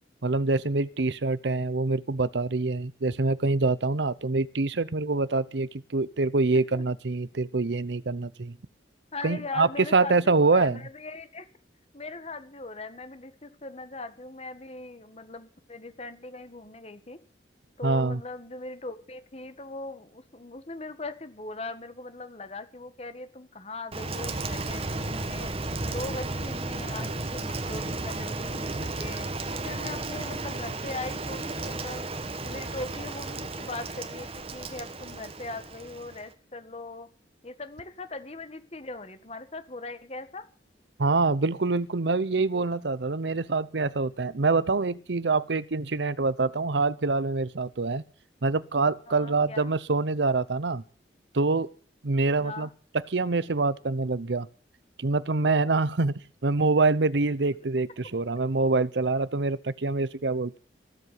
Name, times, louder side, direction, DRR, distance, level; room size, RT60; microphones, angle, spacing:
voice 1, 0.2-8.6 9.2-10.8 17.8-18.2 41.0-48.0 48.4-50.8 51.3-51.7 52.0-52.7 52.9-54.5 55.0-56.1 56.4-60.6, right 3 dB, 75° right, 18 dB, 0.8 m, -25 dB
voice 2, 9.1-11.4 11.9-17.2 17.8-25.5 25.9-29.3 29.6-37.1 37.4-40.5 49.1-49.7 52.4-52.7, left 2 dB, 35° left, 11 dB, 1.7 m, -40 dB
Rain, 23.9-36.3, right 2 dB, 35° right, 1.5 m, -34 dB
15.5 x 8.0 x 9.6 m, 0.42 s
head